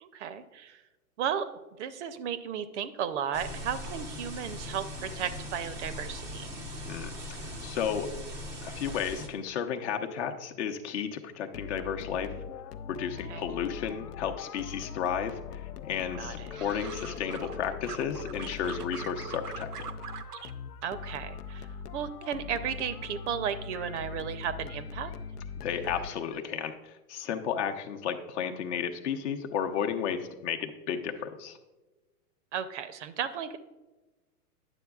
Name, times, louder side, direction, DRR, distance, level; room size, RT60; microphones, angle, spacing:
voice 1, 0.0-0.8 1.2-1.5 1.8-6.5 13.3-13.4 16.2-16.5 20.8-21.7 21.9-25.1 32.5-33.6, right 8 dB, 50° right, 13 dB, 0.6 m, -34 dB
sound 1, 3.3-9.3, left 1 dB, 5° right, 0.4 m, -40 dB
voice 2, 6.9-8.1 8.6-12.3 12.9-19.7 25.6-31.6, left 8 dB, 50° left, 5 dB, 0.8 m, -33 dB
sound 2, 11.5-26.5, left 6 dB, 85° left, 0.6 m, -41 dB
sound 3, 16.1-17.6 17.8-20.5 20.8-21.6 21.9-22.3, right 8 dB, 85° right, 0.7 m, -43 dB
9.9 x 7.0 x 2.3 m, 1.1 s
hypercardioid pair, 120°, 45 cm